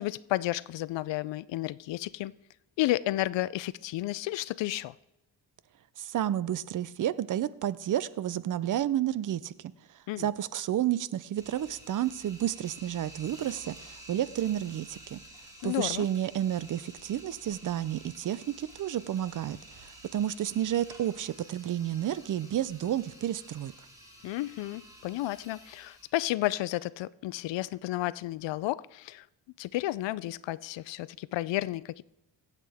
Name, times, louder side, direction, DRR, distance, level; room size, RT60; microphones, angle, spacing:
voice 1, 0.0-2.3 2.8-4.9 10.1-10.3 15.6-16.1 24.2-29.2 29.6-32.0, left 16 dB, 75° left, 0.5 m, -32 dB
voice 2, 6.0-9.7 10.2-15.2 15.6-23.7, right 11 dB, 45° right, 0.5 m, -31 dB
sound 1, 11.3-26.1, right 1 dB, 10° right, 2.1 m, -51 dB
22.5 x 8.3 x 3.5 m
cardioid pair, 135°, 44 cm